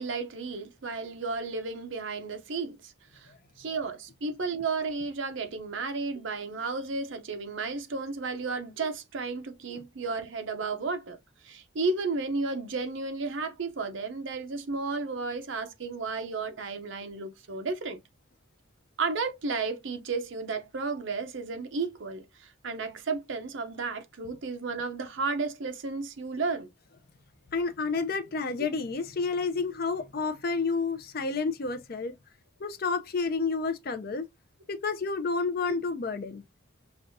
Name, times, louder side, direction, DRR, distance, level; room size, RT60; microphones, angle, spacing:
voice 1, 0.0-3.3 3.6-11.2 11.4-18.0 19.0-26.7, right 4 dB, 65° right, 0.6 m, -33 dB
voice 2, 27.5-32.1 32.6-34.3 34.7-36.4, left 4 dB, 45° left, 0.5 m, -30 dB
5.3 x 2.3 x 2.6 m
head